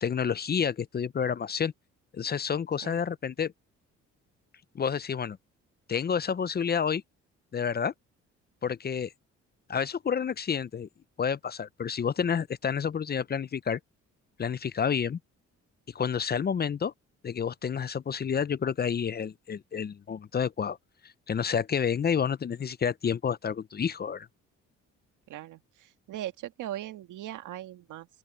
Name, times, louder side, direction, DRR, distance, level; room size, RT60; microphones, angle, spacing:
voice 1, 0.0-1.7 2.1-3.5 4.7-5.4 5.9-7.0 7.5-7.9 8.6-9.1 9.7-10.9 11.2-13.8 14.4-15.2 15.9-16.9 17.2-20.8 21.0-24.3, left 7 dB, 30° left, 0.6 m, -29 dB
voice 2, 25.3-28.1, right 13 dB, 85° right, 1.7 m, -39 dB
open air
cardioid pair, 90°, 30 cm